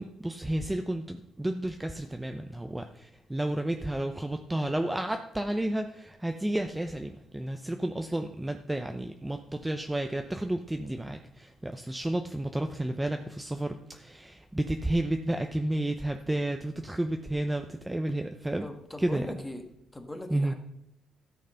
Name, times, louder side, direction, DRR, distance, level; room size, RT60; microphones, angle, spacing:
voice 1, 0.0-18.7 19.0-19.3 20.3-20.5, right 1 dB, 10° right, 6 dB, 0.7 m, -31 dB
voice 2, 18.6-19.6 19.9-20.5, left 1 dB, 15° left, 6 dB, 1.6 m, -39 dB
13.0 x 6.3 x 5.7 m, 0.82 s
cardioid pair, 90°, 0 cm